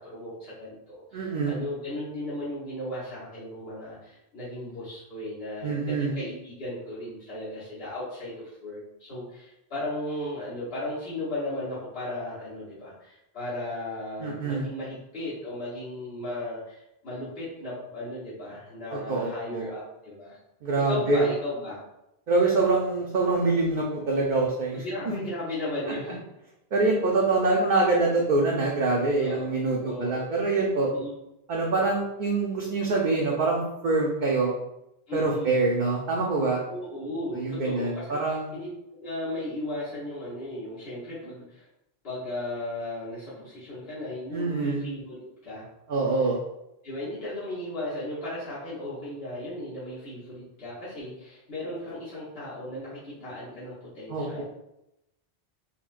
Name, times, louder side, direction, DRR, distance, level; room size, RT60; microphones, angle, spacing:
voice 1, 0.0-20.4 20.8-21.8 24.7-26.2 29.2-29.4 29.8-30.1 30.9-31.1 35.1-35.6 36.7-38.2 38.5-38.7 39.0-41.6 42.0-45.6 46.8-54.4, left 1 dB, 70° left, -11 dB, 1.3 m, -36 dB
voice 2, 1.1-1.5 5.6-6.1 14.2-14.7 18.9-19.7 20.6-21.2 22.3-25.3 25.9-26.0 26.7-30.9 31.5-34.5 35.1-36.6 37.3-38.5 44.3-44.8 45.9-46.4 54.1-54.4, right 3 dB, 60° right, -2 dB, 0.6 m, -25 dB
4.2 x 2.0 x 2.4 m, 0.88 s
omnidirectional pair, 1.1 m